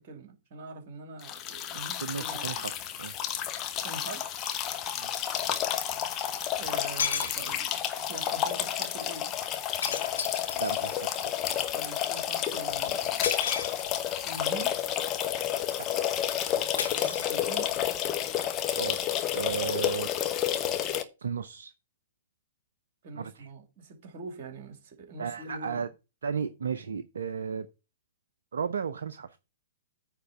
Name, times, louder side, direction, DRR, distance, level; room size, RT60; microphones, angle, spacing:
voice 1, 0.0-2.7 3.8-4.2 6.6-9.4 11.7-13.8 14.2-14.8 17.0-17.7 23.0-25.8, right 3 dB, 45° right, 2.6 m, -44 dB
sound 1, 1.2-21.0, left 10 dB, 25° left, 1.0 m, -30 dB
voice 2, 2.0-2.7 3.0-3.1 4.9-5.1 10.5-11.1 18.7-19.0 19.3-20.1 21.2-21.7 23.2-23.5 25.2-25.9 26.2-27.7 28.5-29.4, right 6 dB, 65° right, 0.5 m, -34 dB
sound 2, 4.3-4.4 6.4-6.5 7.0-7.9 9.8-11.1 13.2-14.2 16.8-17.9, left 6 dB, 65° left, 2.0 m, -34 dB
9.3 x 3.7 x 7.0 m
figure-of-eight pair, 115°, 0 cm